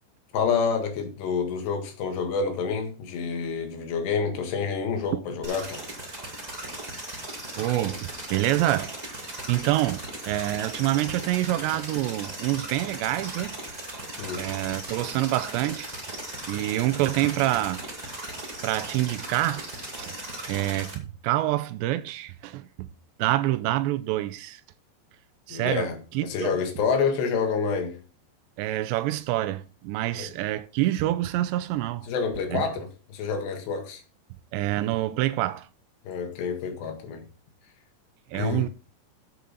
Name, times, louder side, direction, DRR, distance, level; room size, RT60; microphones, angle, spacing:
voice 1, 0.3-5.8 14.2-14.4 25.5-28.0 30.1-30.3 32.1-34.0 36.1-37.2 38.3-38.7, left 5 dB, 75° left, 3.8 m, -28 dB
sound 1, 5.4-20.9, right 1 dB, 25° right, 0.9 m, -37 dB
voice 2, 7.6-13.5 14.4-15.9 16.5-17.8 18.6-19.7 20.0-20.1 20.5-22.9 23.2-24.6 25.5-25.9 26.1-26.5 28.6-32.1 32.5-32.6 34.5-35.7 38.3-38.7, right 15 dB, 90° right, 2.9 m, -27 dB
12.5 x 6.8 x 4.0 m
omnidirectional pair, 5.0 m